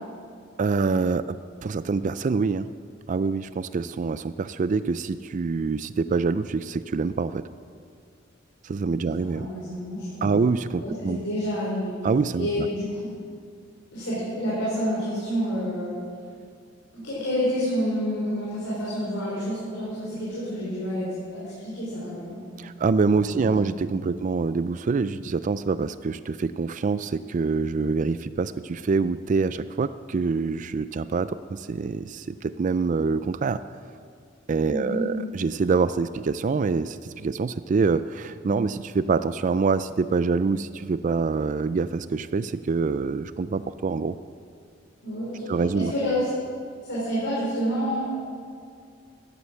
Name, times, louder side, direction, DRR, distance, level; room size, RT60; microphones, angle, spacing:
voice 1, 0.6-2.7 3.1-7.4 8.6-9.5 10.2-11.2 12.0-12.7 22.6-33.6 34.5-44.2 45.5-45.9, right 4 dB, 40° right, 13 dB, 0.3 m, -25 dB
voice 2, 9.0-10.4 10.8-12.0 12.4-13.1 13.9-16.0 16.9-22.4 23.2-24.2 34.7-35.1 45.0-46.3 46.8-48.1, equal, 90° left, -8 dB, 5.0 m, -29 dB
13.5 x 11.5 x 7.8 m, 2.3 s
head